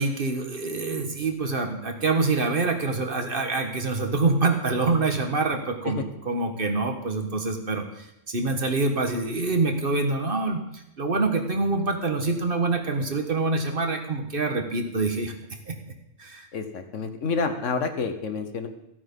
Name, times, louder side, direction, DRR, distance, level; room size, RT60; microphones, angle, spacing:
voice 1, 0.0-10.6 11.0-15.3 15.7-15.8 16.2-16.5, right 3 dB, 45° right, 4 dB, 1.5 m, -26 dB
voice 2, 16.5-18.7, left 4 dB, 75° left, 8 dB, 1.5 m, -28 dB
14.5 x 8.8 x 5.4 m, 0.85 s
omnidirectional pair, 1.3 m